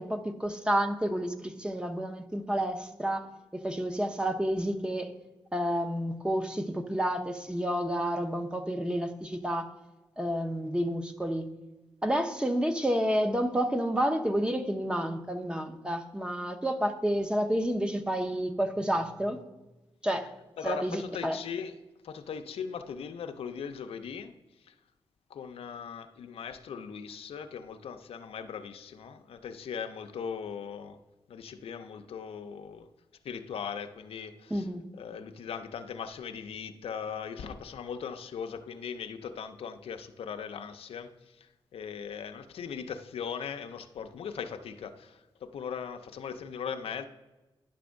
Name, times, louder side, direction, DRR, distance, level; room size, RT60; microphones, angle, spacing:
voice 1, 0.0-3.2 3.5-5.1 5.5-9.7 10.2-11.5 12.0-19.4 20.0-20.3 20.6-21.4 34.5-34.8, equal, 10° right, 6 dB, 0.7 m, -30 dB
voice 2, 20.2-21.8 22.0-24.3 24.6-24.7 25.3-31.0 31.3-32.9 33.2-47.1, left 7 dB, 90° left, 7 dB, 0.5 m, -39 dB
10.0 x 3.4 x 6.3 m, 1.1 s
cardioid pair, 85°, 10 cm